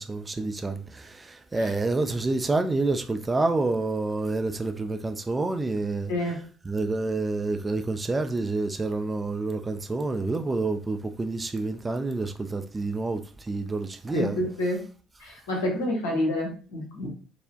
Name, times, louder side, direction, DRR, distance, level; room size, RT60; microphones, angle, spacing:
voice 1, 0.0-6.1 6.7-14.4, right 3 dB, 20° right, 0.4 m, -28 dB
voice 2, 6.1-6.4 14.1-14.8 15.2-17.1, left 1 dB, 70° left, 1.0 m, -28 dB
4.2 x 2.1 x 2.6 m
figure-of-eight pair, 50°, 0 cm